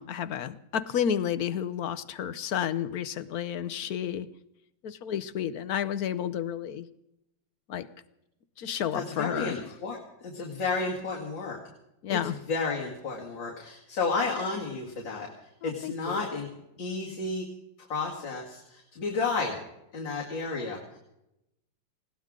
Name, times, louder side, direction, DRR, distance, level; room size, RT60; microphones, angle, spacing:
voice 1, 0.0-4.3 4.8-6.9 7.7-7.9 8.6-9.6 12.0-12.3 15.6-16.3, left 9 dB, 65° left, 15 dB, 1.1 m, -31 dB
voice 2, 8.9-11.6 12.1-15.3 15.6-16.5 16.8-17.5 17.9-19.6 19.9-21.0, left 4 dB, 90° left, -3 dB, 2.9 m, -32 dB
20.0 x 17.0 x 3.7 m, 0.86 s
omnidirectional pair, 2.0 m